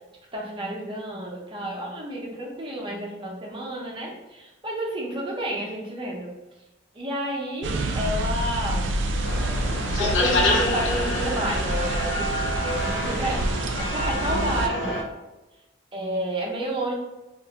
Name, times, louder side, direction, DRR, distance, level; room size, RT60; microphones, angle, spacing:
voice 1, 0.3-6.3 6.9-9.0 10.0-12.3 12.5-15.0 15.9-16.9, right 1 dB, 25° right, -3 dB, 0.7 m, -30 dB
sound 1, 7.6-14.7, right 2 dB, 65° right, 0.4 m, -28 dB
sound 2, 9.2-15.0, left 2 dB, 60° left, 0.6 m, -27 dB
2.7 x 2.5 x 3.5 m, 1.1 s
head